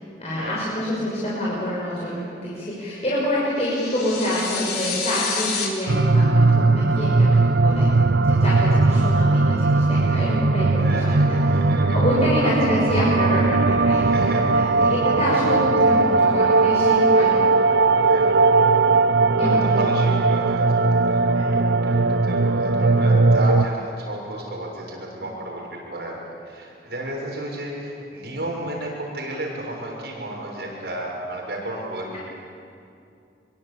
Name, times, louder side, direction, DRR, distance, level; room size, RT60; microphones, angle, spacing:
voice 1, 0.2-7.9 8.3-11.6 11.9-14.0 14.5-17.4 19.4-19.7 21.3-21.5, left 1 dB, 35° left, -7 dB, 6.2 m, -26 dB
sound 1, 3.6-5.7, left 5 dB, 70° left, 3.8 m, -28 dB
sound 2, 5.9-23.6, right 3 dB, 90° right, 0.7 m, -18 dB
voice 2, 10.8-12.5 14.0-14.9 18.0-18.3 19.4-26.2 26.4-32.2, right 1 dB, 70° right, -2 dB, 6.7 m, -32 dB
25.5 x 23.5 x 8.6 m, 2.5 s
head